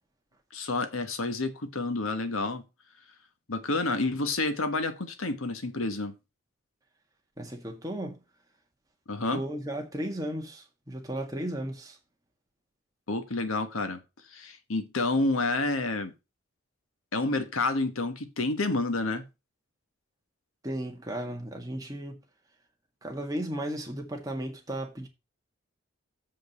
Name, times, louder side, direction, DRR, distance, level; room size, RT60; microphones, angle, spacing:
voice 1, 0.5-2.6 3.5-6.1 9.1-9.4 13.1-14.0 14.3-16.1 17.1-19.2, left 2 dB, 80° left, 1.4 m, -29 dB
voice 2, 7.4-8.2 9.3-12.0 20.6-22.2 23.0-25.1, right 1 dB, 15° right, 1.8 m, -35 dB
7.7 x 5.2 x 6.6 m
head